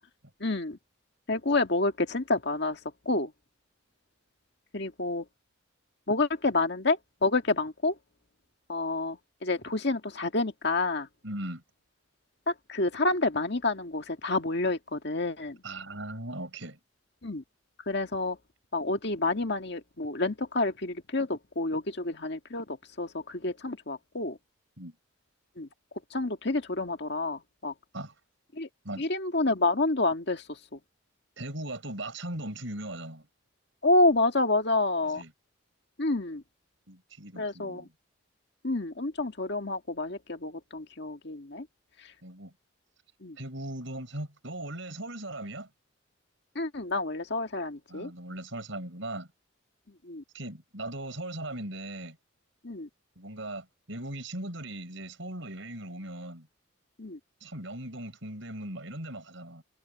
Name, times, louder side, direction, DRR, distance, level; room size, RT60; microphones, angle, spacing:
voice 1, 0.4-0.8 1.3-2.8 3.1-3.3 4.7-5.2 6.1-8.0 8.7-11.1 12.5-15.6 17.2-17.4 17.9-18.4 18.7-24.4 25.6-25.7 26.1-27.7 28.5-28.7 29.0-30.8 33.8-35.2 36.0-36.4 37.4-37.9 38.6-41.7 43.2-43.4 46.6-48.1 50.0-50.2 52.6-52.9 57.0-57.2, left 2 dB, 55° left, 1.9 m, -29 dB
voice 2, 11.2-11.6 15.6-16.8 24.8-24.9 27.9-28.1 28.8-29.1 31.4-33.3 35.0-35.3 36.9-37.9 42.2-42.5 43.4-45.7 47.9-49.3 50.3-52.2 53.2-56.5 57.4-59.6, right 1 dB, 65° right, 6.2 m, -39 dB
head